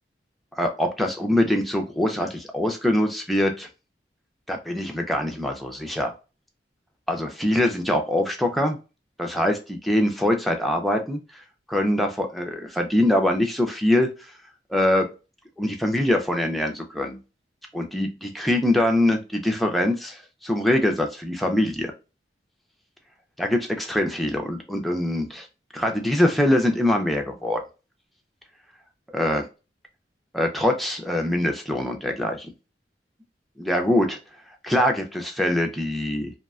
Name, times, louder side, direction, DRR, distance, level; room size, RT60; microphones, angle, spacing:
voice 1, 0.6-3.7 4.5-6.1 7.1-8.8 9.2-11.4 11.7-14.1 14.7-15.1 15.6-17.2 17.7-21.9 23.4-25.5 25.7-27.6 29.1-29.4 30.3-32.5 33.6-34.2 34.6-36.3, left 1 dB, ahead, 2 dB, 0.4 m, -23 dB
2.6 x 2.1 x 2.3 m, 0.30 s
head